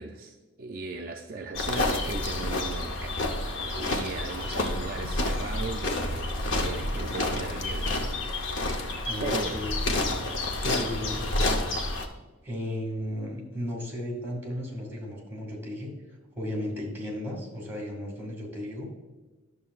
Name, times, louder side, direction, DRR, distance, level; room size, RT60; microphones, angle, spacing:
voice 1, 0.0-8.1 8.7-8.8 9.2-9.7, right 3 dB, 45° right, 3 dB, 0.4 m, -37 dB
sound 1, 1.5-12.1, left 2 dB, 60° left, 0.8 m, -29 dB
voice 2, 9.1-9.7 10.6-11.6 12.4-15.9 16.3-18.9, left 1 dB, 10° right, -2 dB, 2.0 m, -35 dB
10.5 x 6.6 x 2.4 m, 1.2 s
head